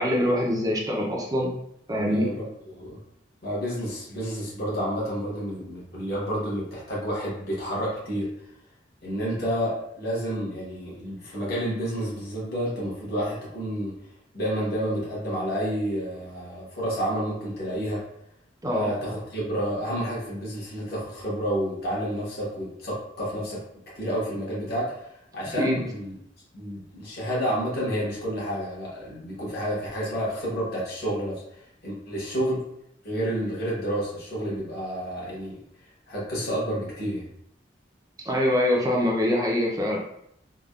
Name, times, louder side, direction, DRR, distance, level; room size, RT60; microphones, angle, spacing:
voice 1, 0.0-1.5 1.9-2.3 18.6-18.9 25.6-25.8 38.2-40.0, left 1 dB, 20° right, -1 dB, 0.5 m, -24 dB
voice 2, 1.9-3.0 3.4-8.3 9.0-13.9 14.3-18.0 18.7-23.6 23.9-26.2 26.5-32.6 33.0-35.6 36.1-37.3, equal, 60° left, -6 dB, 1.2 m, -30 dB
3.4 x 2.2 x 2.3 m, 0.75 s
head